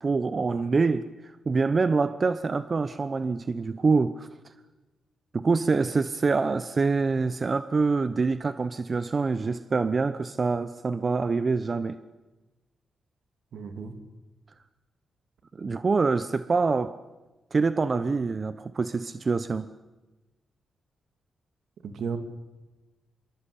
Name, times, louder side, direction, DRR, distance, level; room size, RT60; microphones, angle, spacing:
voice 1, 0.0-4.3 5.3-12.0 15.5-16.9 17.5-19.7, right 4 dB, 45° right, 1.0 m, -25 dB
voice 2, 13.5-13.9 21.8-22.2, right 6 dB, 75° right, 2.7 m, -33 dB
25.5 x 22.5 x 8.7 m
cardioid pair, 55°, 0 cm